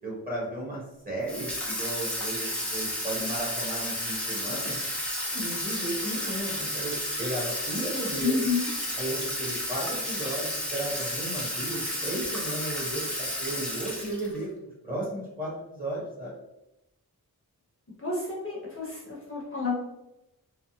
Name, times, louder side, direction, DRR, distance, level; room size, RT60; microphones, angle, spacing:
voice 1, 0.0-4.7 5.2-8.4 8.9-16.3, right 1 dB, 25° right, -5 dB, 1.2 m, -35 dB
Water tap faucet / Sink (filling or washing), 1.3-14.4, equal, 5° left, 0.7 m, -32 dB
voice 2, 8.2-8.7 18.0-19.7, left 4 dB, 35° left, -4 dB, 0.8 m, -30 dB
3.4 x 2.0 x 2.7 m, 0.90 s
wide cardioid pair, 65°, 38 cm